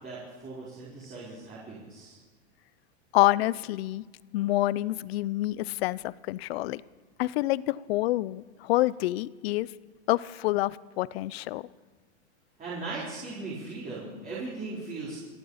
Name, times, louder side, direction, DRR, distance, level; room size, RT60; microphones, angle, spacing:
voice 1, 0.0-2.2 12.6-15.2, right 3 dB, 25° right, -7 dB, 4.2 m, -38 dB
voice 2, 3.1-4.1 4.3-6.8 7.2-9.7 10.1-11.7, left 17 dB, 60° left, 21 dB, 0.6 m, -27 dB
27.5 x 9.2 x 5.6 m, 1.4 s
hypercardioid pair, 130°, 35 cm